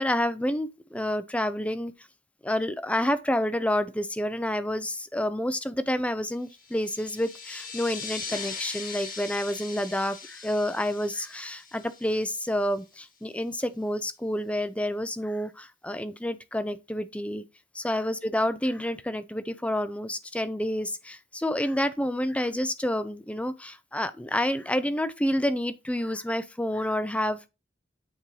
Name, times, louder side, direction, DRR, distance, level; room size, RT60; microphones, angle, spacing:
voice 1, 0.0-1.9 2.4-17.4 17.7-27.5, left 1 dB, 10° left, 0.6 m, -29 dB
sound 1, 6.5-12.7, left 5 dB, 50° left, 1.5 m, -40 dB
9.1 x 4.4 x 3.2 m
head